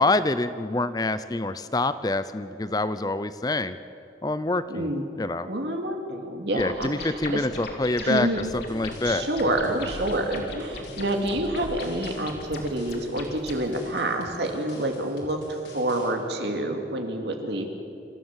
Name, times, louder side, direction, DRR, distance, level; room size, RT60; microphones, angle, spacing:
voice 1, 0.0-3.8 4.2-4.9 5.2-5.5 6.5-8.3 8.5-9.3, left 2 dB, 20° left, 13 dB, 0.5 m, -26 dB
voice 2, 4.7-5.0 5.5-7.5 8.0-8.4 9.0-15.4 15.7-17.7, right 1 dB, 70° right, 3 dB, 2.6 m, -28 dB
sound 1, 6.6-13.6, left 2 dB, 60° left, 2.9 m, -38 dB
sound 2, 8.4-16.1, left 1 dB, 85° left, 4.4 m, -47 dB
27.0 x 14.5 x 7.3 m, 2.5 s
head